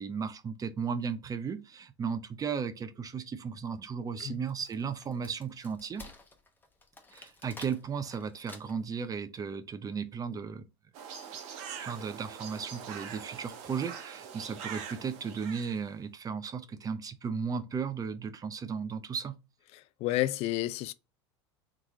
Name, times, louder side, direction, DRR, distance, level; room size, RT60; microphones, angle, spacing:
voice 1, 0.0-6.1 7.1-10.6 11.8-19.3, right 6 dB, 25° right, 0.6 m, -35 dB
Wood, 4.3-9.0, left 3 dB, 15° left, 0.9 m, -52 dB
sound 1, 10.9-15.8, right 7 dB, 55° right, 0.9 m, -43 dB
voice 2, 19.7-20.9, left 15 dB, 45° left, 0.4 m, -31 dB
3.7 x 3.1 x 3.6 m
hypercardioid pair, 90°, 15 cm